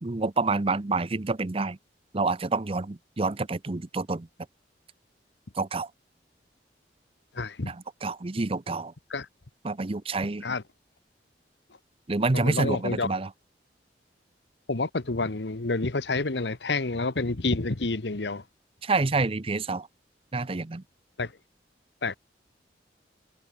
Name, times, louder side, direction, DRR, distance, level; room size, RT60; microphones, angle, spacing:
voice 1, 0.0-1.8 2.1-4.3 5.6-5.9 7.7-8.9 9.6-10.4 12.1-13.3 18.8-19.9 20.3-20.8, right 3 dB, 35° right, 0.7 m, -28 dB
voice 2, 7.3-7.7 9.1-9.3 10.4-10.6 12.3-13.1 14.7-18.4 21.2-21.3 22.0-22.2, left 3 dB, 75° left, 1.2 m, -28 dB
head